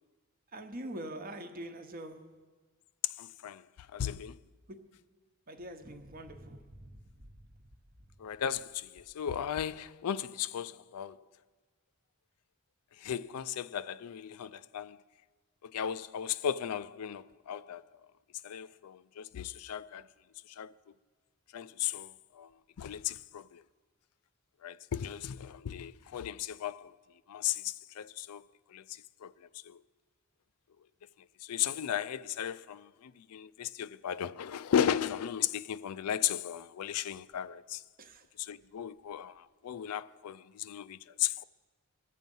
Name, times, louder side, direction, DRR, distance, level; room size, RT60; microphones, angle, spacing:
voice 1, 0.5-2.4 4.7-4.8 5.5-6.9 38.0-38.2, right 1 dB, 40° right, 0.9 m, -44 dB
voice 2, 3.0-3.6 3.9-4.4 8.2-11.2 13.0-15.0 15.6-17.8 18.4-20.1 20.5-20.7 21.5-22.5 22.8-23.6 24.6-27.0 27.3-28.4 28.7-29.8 31.4-37.8 38.4-41.4, left 9 dB, 85° left, 0.4 m, -36 dB
21.5 x 7.5 x 5.4 m
head